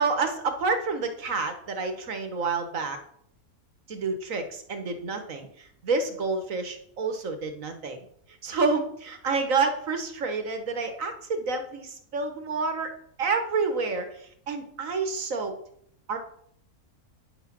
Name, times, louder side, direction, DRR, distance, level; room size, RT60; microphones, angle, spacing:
voice 1, 0.0-3.0 3.9-8.1 8.4-12.9 13.2-15.5 16.1-16.2, right 4 dB, 65° right, 7 dB, 1.7 m, -29 dB
10.0 x 6.3 x 6.0 m, 0.68 s
omnidirectional pair, 1.5 m